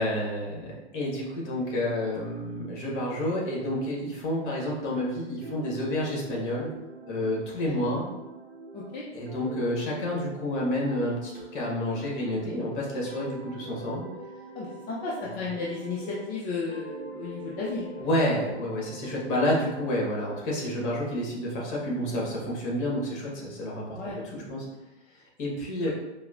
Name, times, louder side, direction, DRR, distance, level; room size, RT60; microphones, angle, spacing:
voice 1, 0.0-6.7 7.1-8.1 9.1-14.0 18.0-24.6 25.4-25.9, left 1 dB, 50° left, -3 dB, 1.3 m, -29 dB
sound 1, 5.4-12.6 13.0-16.4 16.7-20.3, right 3 dB, 90° right, 0.8 m, -44 dB
voice 2, 8.7-9.0 14.5-18.0 23.9-24.2, left 4 dB, 25° left, -4 dB, 0.5 m, -34 dB
4.6 x 2.0 x 2.4 m, 1.0 s
hypercardioid pair, 110°, 34 cm